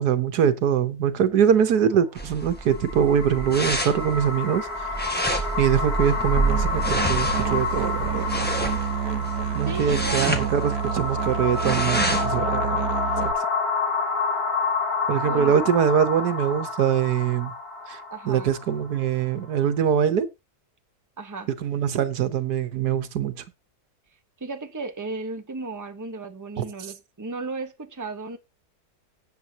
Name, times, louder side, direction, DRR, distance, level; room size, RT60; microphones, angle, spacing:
voice 1, 0.0-4.9 5.6-8.3 9.5-12.8 15.1-17.5 17.9-18.0 18.3-20.3 21.6-23.3 26.6-26.7, right 8 dB, 85° right, 1.6 m, -23 dB
sound 1, 2.2-12.4, right 1 dB, 5° left, 1.3 m, -29 dB
sound 2, 2.5-19.7, left 4 dB, 70° left, 3.1 m, -29 dB
Musical instrument, 6.5-13.3, right 10 dB, 70° right, 1.2 m, -29 dB
voice 2, 9.6-10.4 15.2-15.5 18.1-18.5 21.2-21.5 24.4-28.4, right 3 dB, 15° right, 1.0 m, -34 dB
17.0 x 8.0 x 2.9 m
omnidirectional pair, 1.6 m